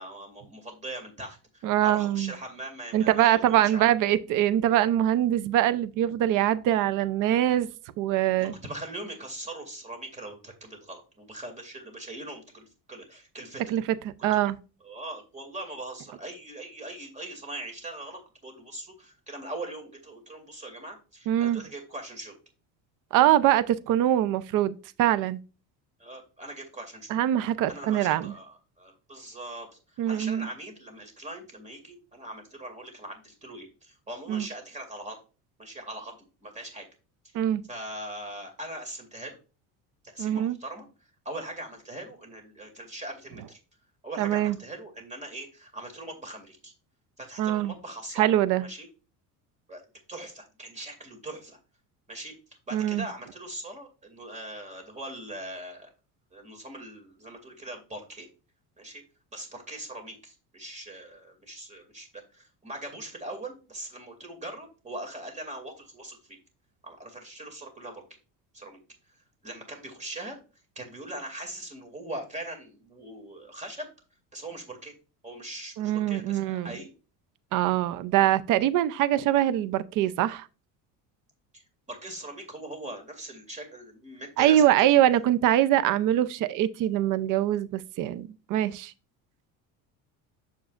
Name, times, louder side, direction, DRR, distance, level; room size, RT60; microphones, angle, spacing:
voice 1, 0.0-3.8 8.4-13.6 14.3-14.4 14.8-22.3 26.0-27.1 27.7-35.2 35.6-36.8 37.7-39.4 40.1-40.9 41.2-43.6 44.0-46.7 47.2-48.2 48.6-48.9 49.7-49.8 50.1-51.6 52.1-52.3 52.7-55.9 56.3-58.3 58.8-59.0 59.3-66.4 66.8-68.0 68.5-68.8 69.4-70.4 70.8-73.9 74.3-74.9 75.2-76.9 81.5-85.2, right 1 dB, 20° right, 2.4 m, -41 dB
voice 2, 1.6-2.3 2.9-7.7 8.0-8.5 13.7-14.6 21.3-21.6 23.1-25.4 27.1-28.3 30.0-30.5 34.3-34.5 37.3-37.6 40.2-40.6 44.2-44.6 47.4-47.7 48.2-48.7 52.7-53.1 75.8-76.7 77.5-80.5 84.4-88.9, right 12 dB, 55° right, 0.6 m, -23 dB
7.2 x 7.2 x 2.4 m
cardioid pair, 125°, 38 cm